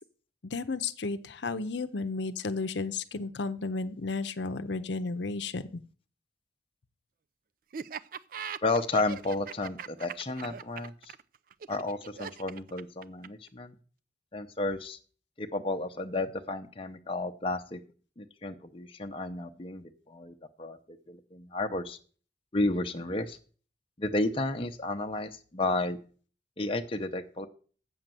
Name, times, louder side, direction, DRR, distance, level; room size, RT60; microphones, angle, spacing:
voice 1, 0.5-5.8, left 3 dB, 75° left, 10 dB, 0.7 m, -33 dB
Laughter, 7.7-13.5, right 7 dB, 50° right, 0.4 m, -40 dB
voice 2, 8.6-11.1 11.7-13.7 14.3-15.0 15.4-17.8 18.2-22.0 22.5-23.4 24.0-26.0 26.6-27.5, left 2 dB, 30° left, 5 dB, 0.7 m, -32 dB
7.9 x 6.6 x 7.5 m, 0.42 s
head